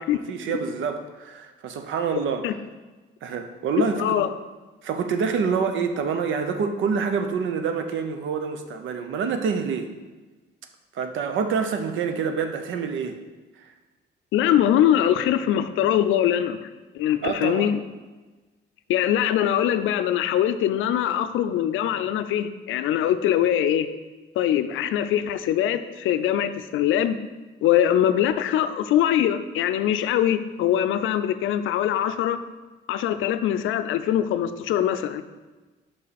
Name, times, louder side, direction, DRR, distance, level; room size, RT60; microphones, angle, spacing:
voice 1, 0.0-2.5 3.2-4.2 4.8-9.9 10.9-13.2 17.2-17.7, right 6 dB, 75° right, 7 dB, 0.7 m, -27 dB
voice 2, 3.8-4.3 14.3-16.6 16.9-17.8 18.9-23.9 24.4-27.2 27.6-32.4 32.9-35.2, left 11 dB, 80° left, 11 dB, 0.4 m, -22 dB
5.6 x 5.4 x 4.1 m, 1.2 s
cardioid pair, 90°, 20 cm